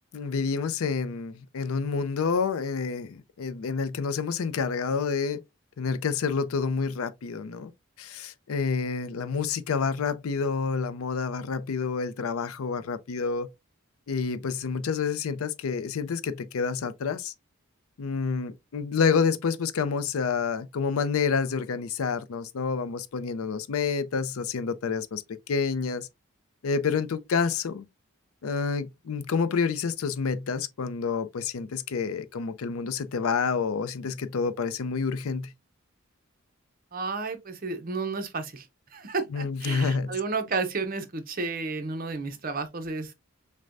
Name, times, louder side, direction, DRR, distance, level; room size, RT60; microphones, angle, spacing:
voice 1, 0.1-5.4 5.8-7.7 8.0-13.5 14.1-17.3 18.0-26.1 26.6-27.9 28.4-35.5 39.3-40.2, left 5 dB, 85° left, 0.4 m, -28 dB
voice 2, 36.9-43.1, right 4 dB, 40° right, 0.6 m, -32 dB
6.3 x 2.2 x 2.5 m
head